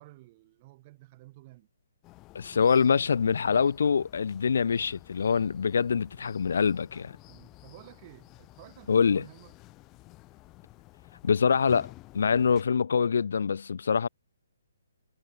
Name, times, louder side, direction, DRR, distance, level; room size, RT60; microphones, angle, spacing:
voice 1, 0.0-1.7 7.3-9.6, right 19 dB, 20° right, 3.8 m, -52 dB
sound 1, 2.0-12.6, left 20 dB, 15° left, 3.8 m, -52 dB
voice 2, 2.3-7.1 8.9-9.2 11.2-14.1, left 6 dB, 60° left, 0.3 m, -25 dB
hypercardioid pair, 175°, 0 cm